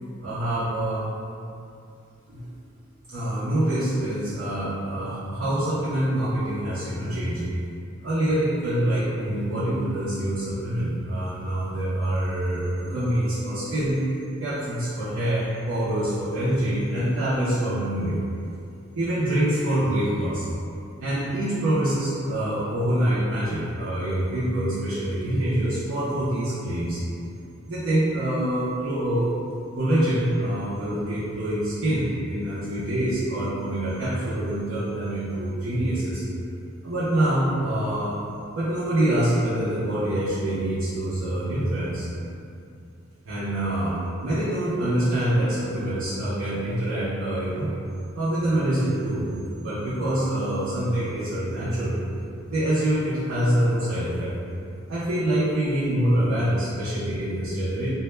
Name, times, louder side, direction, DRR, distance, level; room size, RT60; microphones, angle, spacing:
voice 1, 0.2-1.1 2.3-2.5 3.1-7.4 8.0-14.0 14.4-18.2 18.9-20.5 21.0-27.0 27.7-29.3 29.7-36.2 36.8-38.2 38.5-42.1 43.2-47.7 48.1-49.3 49.6-52.0 52.5-54.3 54.9-57.9, right 1 dB, 70° right, -11 dB, 0.5 m, -25 dB
2.1 x 2.0 x 3.1 m, 2.5 s
head